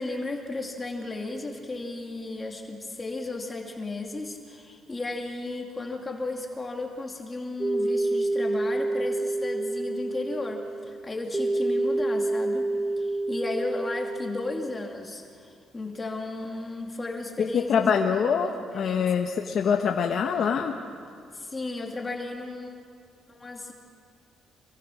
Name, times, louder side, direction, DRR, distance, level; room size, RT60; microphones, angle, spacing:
voice 1, 0.0-12.7 13.0-17.9 18.4-19.1 21.3-22.7 23.3-23.7, left 2 dB, 25° left, 1 dB, 2.6 m, -34 dB
sound 1, 7.6-14.9, right 2 dB, 20° right, 1.5 m, -28 dB
voice 2, 17.5-20.7, left 6 dB, 60° left, 3 dB, 1.2 m, -24 dB
27.0 x 22.0 x 6.4 m, 2.3 s
cardioid pair, 90°, 0 cm